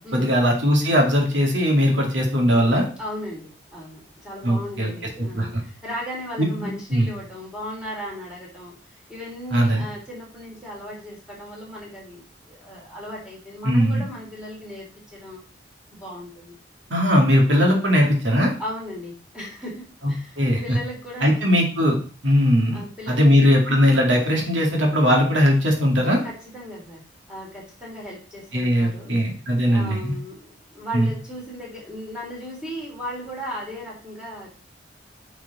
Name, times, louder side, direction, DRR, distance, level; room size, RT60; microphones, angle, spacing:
voice 1, 0.1-2.9 4.4-4.9 5.2-5.6 6.4-7.1 9.5-9.8 13.6-14.0 16.9-18.5 20.4-20.8 21.2-22.0 22.2-22.8 23.1-26.2 28.5-30.1 30.9-31.1, equal, 90° right, 1 dB, 2.3 m, -19 dB
voice 2, 3.0-15.4 15.9-16.6 18.6-21.4 22.7-23.3 26.2-27.0 27.3-29.2 29.6-34.5, equal, 5° right, -4 dB, 3.5 m, -36 dB
9.7 x 4.9 x 4.2 m, 0.40 s
head